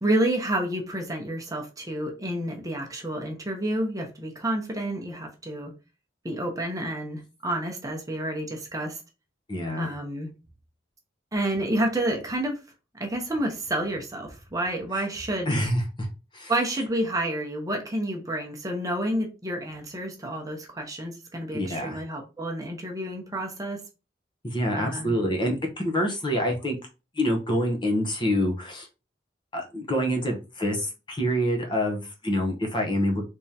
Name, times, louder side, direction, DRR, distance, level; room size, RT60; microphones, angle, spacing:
voice 1, 0.0-5.7 6.2-9.0 9.8-10.3 11.3-12.6 13.0-15.6 16.5-23.8 24.7-25.1, right 1 dB, 20° right, 0.8 m, -29 dB
voice 2, 9.5-9.9 15.5-16.1 16.3-16.5 21.5-22.0 24.4-26.8 27.1-28.9 29.5-33.2, equal, 25° left, 0.8 m, -26 dB
3.5 x 3.2 x 2.8 m
head